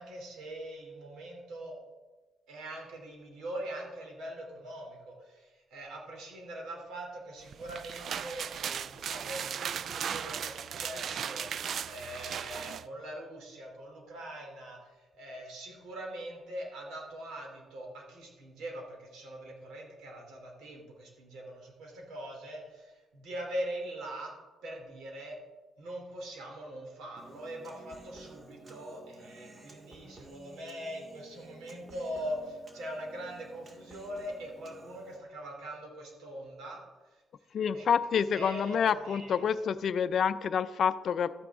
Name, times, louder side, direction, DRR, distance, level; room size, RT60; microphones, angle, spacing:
voice 1, 0.0-1.8 2.5-24.3 24.6-25.4 25.8-37.2 37.7-37.9 38.3-39.5, right 1 dB, 85° right, 0 dB, 2.8 m, -42 dB
sound 1, 7.5-12.8, right 8 dB, 60° right, 0.4 m, -37 dB
Human voice, 27.2-35.2, right 1 dB, 35° right, 1.8 m, -52 dB
voice 2, 37.5-41.3, left 7 dB, 60° left, 14 dB, 0.5 m, -28 dB
12.5 x 8.8 x 3.6 m, 1.2 s
cardioid pair, 90°, 0 cm